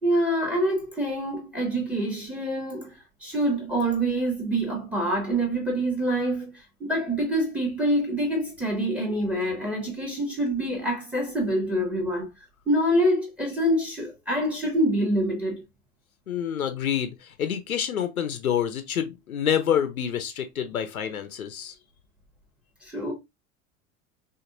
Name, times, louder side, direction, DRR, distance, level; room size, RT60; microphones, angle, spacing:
voice 1, 0.0-12.3 12.7-15.6 22.9-23.1, right 1 dB, 5° right, 2.2 m, -26 dB
voice 2, 16.3-21.8, left 9 dB, 75° left, 0.8 m, -27 dB
5.8 x 2.9 x 2.5 m
figure-of-eight pair, 80°, 43 cm